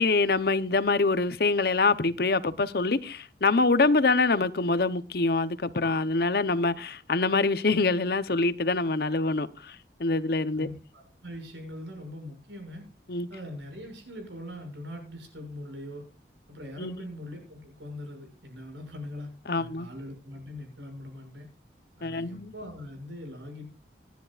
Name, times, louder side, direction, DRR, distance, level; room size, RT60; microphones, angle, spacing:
voice 1, 0.0-10.7 13.1-13.3 16.8-16.9 19.5-19.9 22.0-22.5, left 3 dB, 55° left, 0.7 m, -25 dB
voice 2, 10.5-12.8 13.3-16.0 16.5-21.5 22.0-23.6, left 1 dB, 85° right, 6.3 m, -42 dB
26.5 x 10.5 x 2.4 m
head